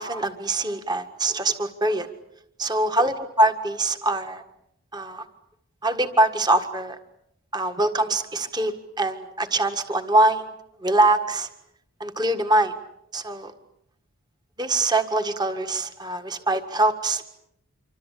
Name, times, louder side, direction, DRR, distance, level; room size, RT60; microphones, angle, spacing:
voice 1, 0.0-2.1 2.6-4.4 4.9-5.2 5.8-7.0 7.5-8.7 9.0-10.5 10.8-11.5 12.0-12.7 13.1-13.5 14.6-17.3, right 2 dB, 20° right, 8 dB, 1.7 m, -23 dB
27.0 x 25.0 x 8.5 m, 0.76 s
head